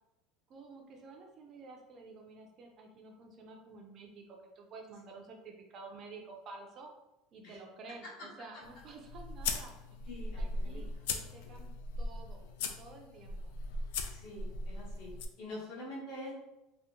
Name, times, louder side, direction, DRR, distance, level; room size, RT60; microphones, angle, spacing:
voice 1, 0.5-6.9 7.3-9.7 10.4-13.5, right 3 dB, 30° right, 2 dB, 0.4 m, -51 dB
sound 1, 8.6-15.3, left 3 dB, 90° left, 0.3 m, -39 dB
voice 2, 10.1-10.8 14.1-15.1 15.4-16.3, left 1 dB, 55° left, -3 dB, 1.1 m, -45 dB
2.7 x 2.0 x 3.6 m, 0.94 s
cardioid pair, 170°, 0 cm